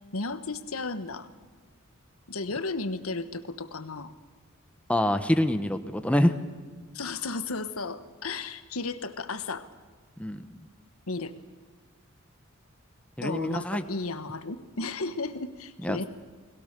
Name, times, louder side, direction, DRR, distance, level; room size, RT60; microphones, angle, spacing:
voice 1, 0.1-1.3 2.3-4.1 6.9-9.7 11.1-11.3 13.2-16.0, left 3 dB, 85° left, 11 dB, 1.4 m, -34 dB
voice 2, 4.9-6.3 10.2-10.4 13.2-13.8 15.8-16.0, left 1 dB, 5° left, 8 dB, 1.0 m, -25 dB
30.0 x 21.0 x 6.8 m, 1.5 s
head